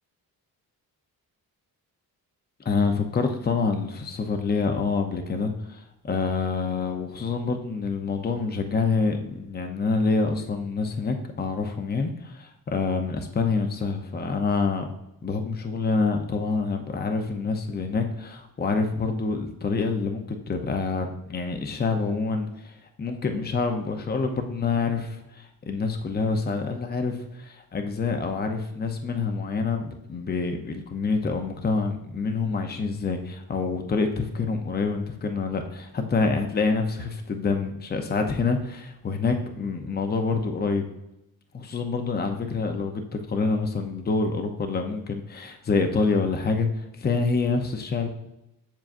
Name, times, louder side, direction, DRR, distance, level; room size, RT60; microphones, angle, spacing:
voice 1, 2.6-14.9 15.2-40.9 41.5-48.1, left 4 dB, 25° left, 5 dB, 0.7 m, -27 dB
7.4 x 7.3 x 2.6 m, 0.90 s
cardioid pair, 120°, 37 cm